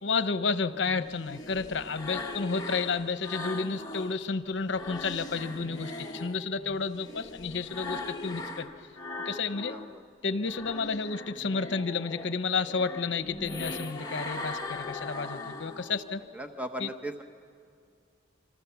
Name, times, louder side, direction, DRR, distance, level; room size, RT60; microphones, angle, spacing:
voice 1, 0.0-8.7 9.2-9.8 10.2-16.2 16.8-16.9, left 4 dB, 75° left, 12 dB, 0.8 m, -31 dB
sound 1, 0.7-4.2 4.5-9.9 10.3-16.2, left 2 dB, 20° left, 1.4 m, -40 dB
voice 2, 9.7-10.0 16.3-17.2, right 1 dB, 10° right, 5 dB, 1.0 m, -38 dB
26.5 x 25.5 x 7.0 m, 2.3 s
head